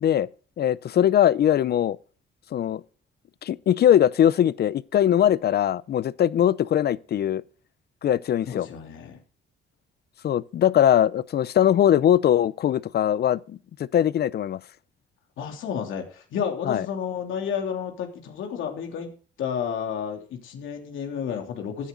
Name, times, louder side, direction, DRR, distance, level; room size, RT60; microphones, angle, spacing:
voice 1, 0.6-2.0 2.5-2.8 3.4-7.4 8.0-8.7 10.2-14.6 16.6-16.9, left 10 dB, 55° left, 0.6 m, -21 dB
voice 2, 8.5-9.2 15.4-19.1 19.4-21.9, left 7 dB, 80° left, 3.2 m, -31 dB
15.5 x 10.0 x 3.9 m
cardioid pair, 90°, 20 cm